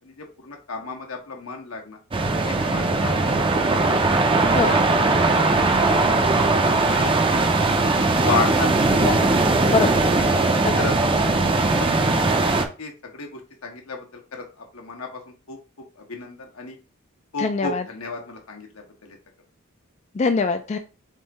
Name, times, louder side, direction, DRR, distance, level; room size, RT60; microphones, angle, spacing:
voice 1, 0.0-2.0 2.4-4.1 4.7-5.9 6.9-7.2 8.1-8.9 10.4-15.6 16.0-16.8 17.3-19.2, left 4 dB, 80° left, 2 dB, 1.2 m, -33 dB
sound 1, 2.1-12.6, right 3 dB, 25° right, 0.5 m, -19 dB
voice 2, 9.0-9.4 9.7-9.9 10.6-10.8 17.4-17.8 20.1-20.8, left 4 dB, 30° left, 7 dB, 0.3 m, -23 dB
3.7 x 3.4 x 4.1 m, 0.33 s
head